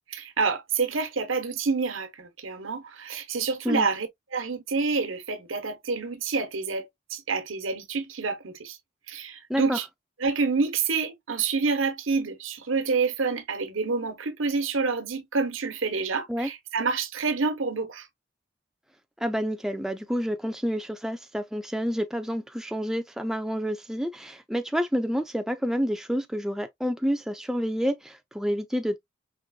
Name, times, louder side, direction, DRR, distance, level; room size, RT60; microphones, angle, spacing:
voice 1, 0.1-4.1 4.3-8.8 9.1-9.8 10.2-18.1, right 4 dB, 85° right, 1.0 m, -28 dB
voice 2, 19.2-29.0, equal, ahead, 0.3 m, -29 dB
5.1 x 3.4 x 2.2 m
head